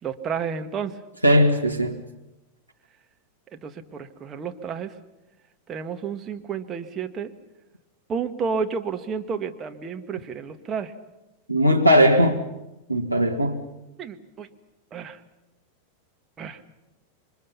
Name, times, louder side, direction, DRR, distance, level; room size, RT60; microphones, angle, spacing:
voice 1, 0.0-1.0 3.5-5.0 5.7-7.3 8.1-10.9 14.0-14.5 14.9-15.2 16.4-16.6, right 6 dB, 25° right, 1.7 m, -31 dB
voice 2, 1.2-2.0 11.5-12.4 12.9-13.6, equal, 90° right, 1.5 m, -18 dB
27.5 x 23.5 x 5.7 m
figure-of-eight pair, 90°, 0 cm